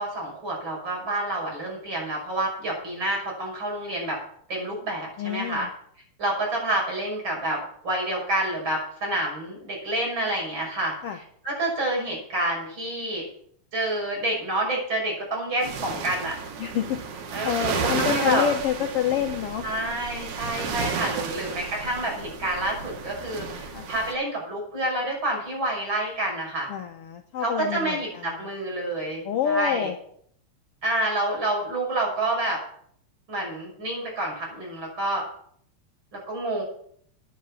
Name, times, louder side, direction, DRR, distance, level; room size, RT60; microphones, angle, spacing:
voice 1, 0.0-4.2 4.5-5.7 6.2-13.3 13.7-16.4 17.3-18.5 19.6-26.7 27.4-29.9 30.8-32.6 33.3-35.2 36.3-36.6, right 1 dB, 40° right, -2 dB, 6.6 m, -28 dB
voice 2, 5.2-5.7 11.0-11.2 16.6-19.7 23.7-23.9 26.7-28.5 29.2-30.0, left 9 dB, 65° left, 4 dB, 1.6 m, -28 dB
sound 1, 15.6-24.1, right 5 dB, 90° right, 2.9 m, -32 dB
9.8 x 9.6 x 7.1 m, 0.64 s
omnidirectional pair, 3.4 m